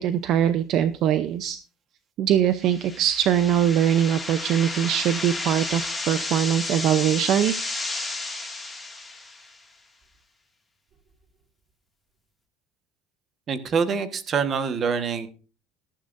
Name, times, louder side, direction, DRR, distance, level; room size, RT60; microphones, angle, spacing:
voice 1, 0.0-1.6 2.2-7.7, right 10 dB, 45° right, 12 dB, 0.6 m, -22 dB
sound 1, 2.6-9.6, left 2 dB, 5° left, 2.2 m, -32 dB
voice 2, 13.5-15.3, right 6 dB, 30° right, 10 dB, 1.3 m, -25 dB
18.0 x 13.0 x 2.6 m, 0.36 s
cardioid pair, 170°, 0 cm